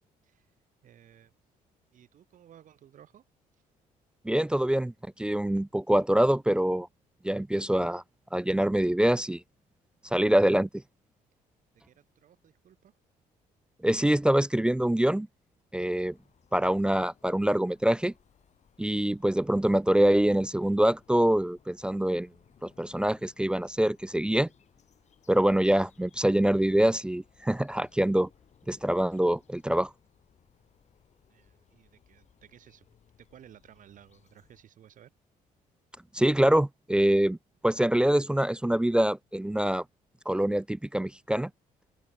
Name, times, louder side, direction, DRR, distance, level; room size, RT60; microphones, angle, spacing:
voice 1, 0.2-0.5 0.8-1.4 1.9-3.3 3.5-3.6 11.7-12.9 31.3-32.9 33.2-35.1, right 10 dB, 60° right, 5.2 m, -56 dB
voice 2, 4.2-6.9 7.2-8.0 8.3-9.4 10.1-10.7 13.8-15.3 15.7-16.2 16.5-18.1 18.8-22.3 22.6-24.5 25.3-28.3 28.7-29.9 36.1-37.4 37.6-39.8 40.3-41.5, right 1 dB, 5° right, 0.3 m, -25 dB
sound 1, 15.8-34.6, left 8 dB, 50° left, 6.3 m, -64 dB
open air
cardioid pair, 100°, 15 cm